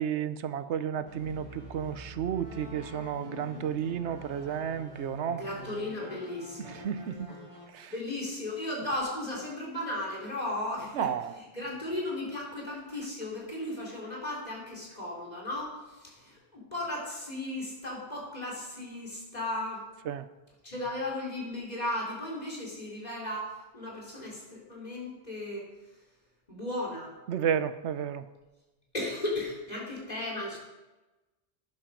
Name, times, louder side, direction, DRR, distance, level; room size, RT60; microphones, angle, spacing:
voice 1, 0.0-5.4 6.8-7.3 7.7-7.9 11.0-11.3 20.1-20.3 27.3-28.2, right 8 dB, 85° right, 13 dB, 1.0 m, -32 dB
sound 1, 0.9-7.6, equal, 40° right, 3.8 m, -46 dB
voice 2, 5.4-6.9 7.9-19.8 20.6-25.9 26.5-27.1 28.9-30.6, left 1 dB, 40° left, -4 dB, 4.0 m, -36 dB
13.0 x 10.5 x 5.1 m, 1.1 s
omnidirectional pair, 1.1 m